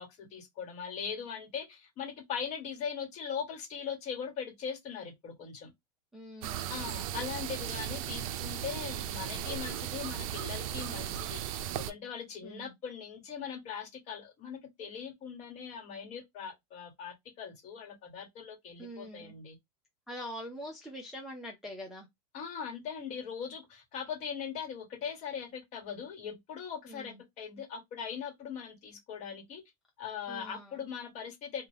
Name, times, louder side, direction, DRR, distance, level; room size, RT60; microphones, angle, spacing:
voice 1, 0.0-5.7 6.7-19.6 22.3-29.6 30.0-31.7, left 7 dB, 35° left, 1.2 m, -40 dB
voice 2, 6.1-6.9 12.4-12.7 18.8-19.3 20.1-22.1 26.9-27.2 30.3-30.8, equal, ahead, 0.5 m, -44 dB
sound 1, 6.4-11.9, right 11 dB, 60° right, 0.4 m, -36 dB
2.8 x 2.2 x 3.2 m
supercardioid pair, 150°, 20 cm